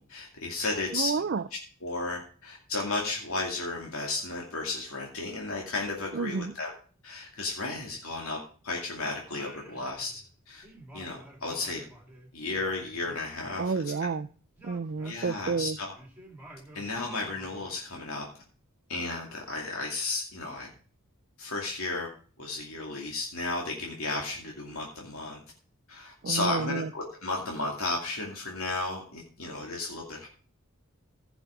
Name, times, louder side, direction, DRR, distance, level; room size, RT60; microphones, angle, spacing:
voice 1, 0.0-1.1 1.8-6.7 7.0-8.4 8.6-10.1 10.5-10.6 10.9-11.8 12.3-13.7 15.0-15.9 16.7-18.2 18.9-20.7 21.4-22.1 22.4-25.4 25.9-30.3, left 3 dB, 75° left, -1 dB, 2.4 m, -33 dB
voice 2, 0.9-1.4 6.1-6.5 13.6-14.3 14.6-15.8 26.2-26.9, right 5 dB, 50° right, 8 dB, 0.4 m, -30 dB
Singing, 9.2-10.4 10.6-14.3 14.6-17.8, right 1 dB, 10° right, 2.6 m, -50 dB
16.0 x 6.1 x 5.1 m, 0.42 s
head